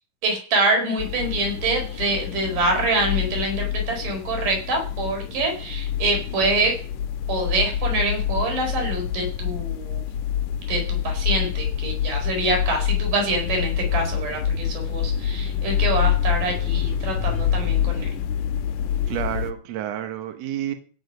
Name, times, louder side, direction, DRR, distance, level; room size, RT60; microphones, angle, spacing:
voice 1, 0.2-6.8 7.3-10.0 10.7-18.1, right 2 dB, 80° right, 2 dB, 5.9 m, -25 dB
sound 1, 1.0-19.5, left 9 dB, 75° left, 2.1 m, -26 dB
voice 2, 19.1-20.7, right 11 dB, 60° right, 7 dB, 2.1 m, -29 dB
16.5 x 6.5 x 5.3 m, 0.42 s
omnidirectional pair, 3.7 m